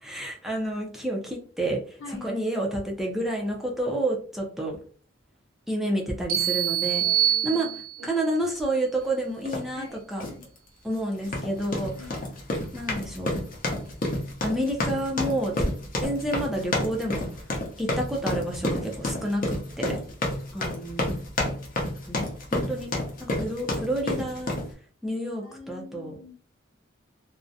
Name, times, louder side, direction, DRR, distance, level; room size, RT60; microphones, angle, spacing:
voice 1, 0.0-4.8 5.7-7.0 7.4-7.7 8.0-10.2 10.8-11.9 12.7-13.3 14.4-15.5 16.0-17.3 17.8-19.9 20.5-21.1 22.1-22.9 23.2-24.5 25.0-26.1, right 1 dB, ahead, -1 dB, 0.4 m, -29 dB
voice 2, 2.0-2.4 6.8-8.3 9.7-10.5 11.9-12.2 18.7-18.9 19.8-20.2 25.4-26.3, left 3 dB, 85° left, -2 dB, 0.9 m, -44 dB
sound 1, 6.3-8.2, right 11 dB, 50° right, 0.6 m, -25 dB
sound 2, 9.5-9.7 10.2-10.4 11.2-24.7, left 1 dB, 45° left, 0.6 m, -30 dB
2.4 x 2.1 x 2.6 m, 0.43 s
head